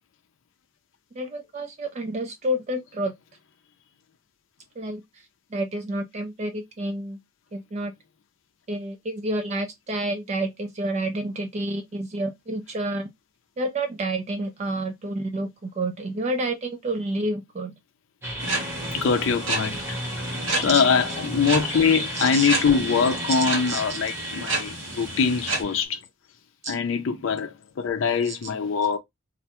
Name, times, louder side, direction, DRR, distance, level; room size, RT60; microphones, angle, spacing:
voice 1, 1.2-3.1 4.8-5.0 5.5-7.2 7.5-7.9 8.7-13.1 13.6-17.7 20.5-20.8 22.2-22.5 23.3-24.0 26.6-26.8 28.2-28.4, right 1 dB, 35° right, 0.4 m, -29 dB
sound 1, 18.2-25.8, equal, 15° right, 0.9 m, -33 dB
sound 2, 18.4-25.6, right 2 dB, 70° right, 1.0 m, -31 dB
voice 2, 18.9-20.0 20.5-26.0 26.7-29.0, left 6 dB, 70° left, 0.4 m, -23 dB
2.5 x 2.2 x 2.8 m
head